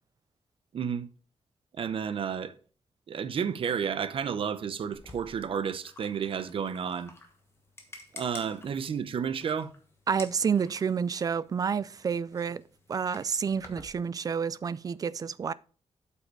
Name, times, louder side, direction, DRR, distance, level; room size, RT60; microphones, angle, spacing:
voice 1, 0.7-1.1 1.8-2.5 3.1-7.1 8.1-9.7, right 7 dB, 50° right, 0.8 m, -31 dB
sound 1, 4.9-13.9, left 2 dB, 20° left, 1.2 m, -51 dB
voice 2, 10.1-12.6 12.9-15.5, right 6 dB, 30° right, 0.4 m, -29 dB
8.1 x 5.7 x 4.7 m
wide cardioid pair, 170°, 12 cm